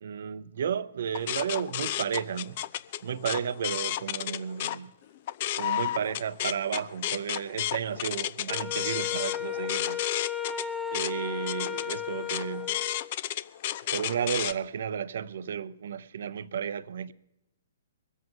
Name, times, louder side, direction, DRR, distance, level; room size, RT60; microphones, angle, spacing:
voice 1, 0.0-2.6 3.0-4.9 5.5-10.0 10.9-12.8 13.9-17.1, right 8 dB, 65° right, 0.7 m, -33 dB
sound 1, 1.1-4.8 5.2-14.5, left 12 dB, 45° left, 0.7 m, -32 dB
Wind instrument woodwind instrument, 8.5-13.1, left 9 dB, 5° left, 0.8 m, -34 dB
23.0 x 8.2 x 5.4 m
hypercardioid pair, 130°, 0 cm